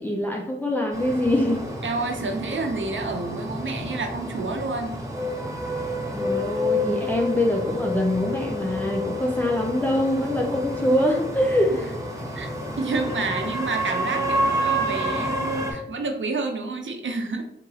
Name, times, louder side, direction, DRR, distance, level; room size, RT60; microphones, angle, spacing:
voice 1, 0.0-1.6 6.1-11.9, left 1 dB, 10° left, 0 dB, 0.4 m, -24 dB
sound 1, 0.9-15.7, equal, 15° right, 0.8 m, -29 dB
voice 2, 1.8-5.0 11.7-11.8 12.3-12.5 12.8-17.4, right 3 dB, 80° right, 4 dB, 0.6 m, -29 dB
3.7 x 2.9 x 2.8 m, 0.77 s
wide cardioid pair, 65°, 20 cm